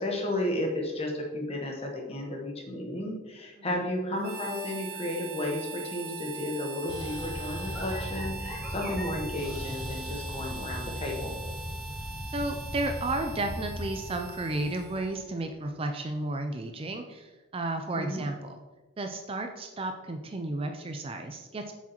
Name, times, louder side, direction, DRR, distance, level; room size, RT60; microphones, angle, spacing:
voice 1, 0.0-11.4 17.9-18.2, left 1 dB, 30° left, 1 dB, 1.2 m, -33 dB
Harmonica, 4.2-15.3, right 4 dB, 45° right, 0.9 m, -42 dB
sound 1, 6.9-15.4, left 1 dB, 5° right, 2.5 m, -38 dB
voice 2, 12.3-18.6 19.0-21.7, right 2 dB, 25° right, 5 dB, 0.4 m, -33 dB
8.1 x 6.1 x 3.0 m, 1.2 s
head